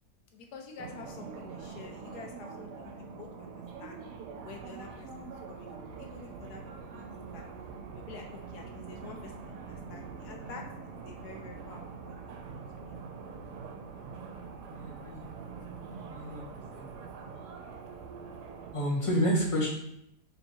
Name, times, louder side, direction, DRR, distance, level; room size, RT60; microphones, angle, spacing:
voice 1, 0.3-4.0 4.4-6.6 6.9-7.4 7.9-13.0, left 4 dB, 75° left, 2 dB, 1.2 m, -49 dB
sound 1, 0.8-18.8, right 5 dB, 90° right, 1.2 m, -44 dB
voice 2, 14.7-15.2 15.9-17.1 18.7-19.7, equal, 25° left, -5 dB, 1.0 m, -30 dB
3.5 x 2.9 x 4.3 m, 0.77 s
omnidirectional pair, 1.7 m